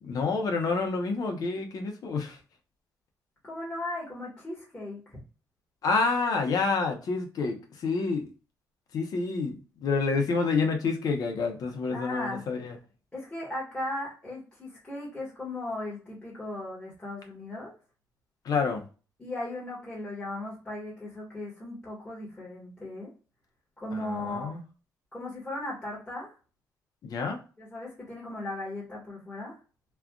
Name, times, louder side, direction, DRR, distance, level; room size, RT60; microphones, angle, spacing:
voice 1, 0.0-2.4 5.8-8.3 8.9-12.8 18.4-18.8 23.9-24.6 27.0-27.4, left 4 dB, 65° left, 4 dB, 0.9 m, -28 dB
voice 2, 3.4-5.2 11.9-12.4 13.1-17.7 19.2-23.1 23.8-24.5 25.1-26.3 27.6-29.6, left 1 dB, 15° left, -5 dB, 1.4 m, -37 dB
3.3 x 2.5 x 2.2 m, 0.35 s
cardioid pair, 95°, 7 cm